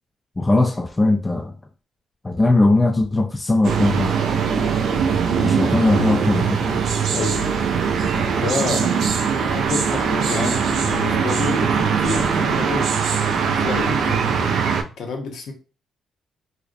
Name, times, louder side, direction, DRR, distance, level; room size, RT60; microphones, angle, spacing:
voice 1, 0.4-1.5 2.2-4.1 5.4-6.6, left 2 dB, 20° left, 0.3 m, -19 dB
sound 1, 3.6-14.8, right 6 dB, 70° right, 0.3 m, -21 dB
voice 2, 7.1-7.6 8.4-8.9 9.4-12.9 13.5-15.5, left 4 dB, 70° left, 0.6 m, -29 dB
2.4 x 2.0 x 2.5 m
cardioid pair, 90°, 0 cm